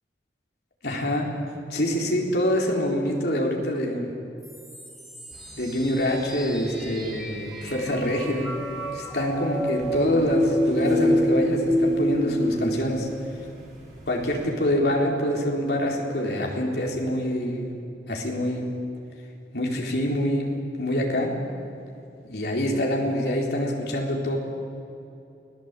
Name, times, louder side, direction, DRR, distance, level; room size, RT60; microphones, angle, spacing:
voice 1, 0.8-1.3 1.7-4.1 5.6-8.5 8.9-13.1 14.1-17.7 18.1-18.7 19.5-20.5 20.8-21.3 22.3-24.4, equal, 65° left, 0 dB, 4.1 m, -25 dB
sound 1, 4.4-12.6, left 1 dB, ahead, 4.1 m, -27 dB
sound 2, 5.3-14.5, right 1 dB, 45° right, 8.0 m, -47 dB
29.0 x 18.5 x 8.4 m, 2.7 s
head